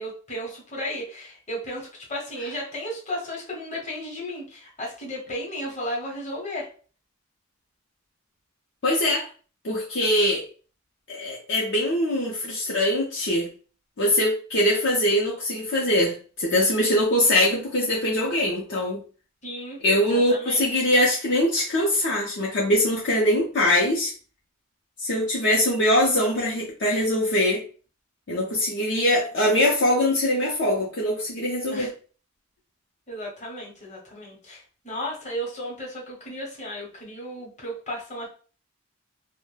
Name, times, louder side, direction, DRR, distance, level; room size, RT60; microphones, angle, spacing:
voice 1, 0.0-6.7 19.4-20.9 31.7-31.9 33.1-38.3, equal, 35° left, -2 dB, 0.8 m, -34 dB
voice 2, 8.8-9.3 9.6-10.4 11.1-13.5 14.0-19.0 19.8-24.1 25.0-27.6 28.3-31.9, left 1 dB, 55° left, -4 dB, 0.5 m, -22 dB
2.2 x 2.0 x 3.2 m, 0.39 s
head